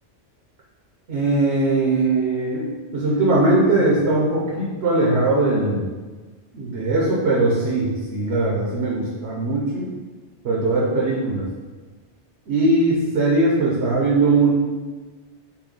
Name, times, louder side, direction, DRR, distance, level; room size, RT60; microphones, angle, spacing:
voice 1, 1.1-5.9 6.5-9.9 10.4-11.4 12.5-14.5, right 2 dB, 65° right, -4 dB, 1.0 m, -20 dB
5.7 x 2.2 x 4.0 m, 1.3 s
omnidirectional pair, 1.2 m